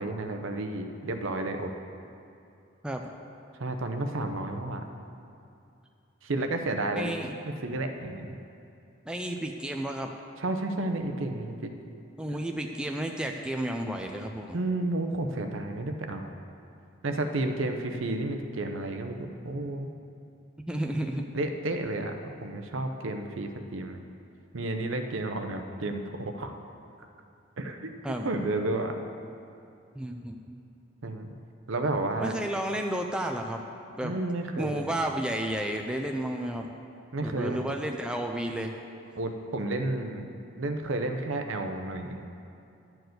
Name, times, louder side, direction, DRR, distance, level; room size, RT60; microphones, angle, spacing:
voice 1, 0.0-1.7 3.6-4.8 6.2-7.1 7.4-8.4 10.4-11.7 14.5-16.3 17.0-19.9 21.3-24.0 24.5-26.5 27.6-27.9 28.2-29.0 31.0-31.3 31.7-32.3 34.0-34.9 37.1-37.6 39.2-40.3 40.6-42.2, right 2 dB, 75° right, 6 dB, 0.7 m, -31 dB
voice 2, 7.0-7.4 9.1-10.1 12.2-14.6 20.6-21.3 28.0-28.3 30.0-30.6 32.2-33.6 34.0-34.1 34.6-36.7 37.2-38.7, right 1 dB, 5° right, 2 dB, 0.4 m, -32 dB
10.5 x 4.6 x 7.8 m, 2.6 s
head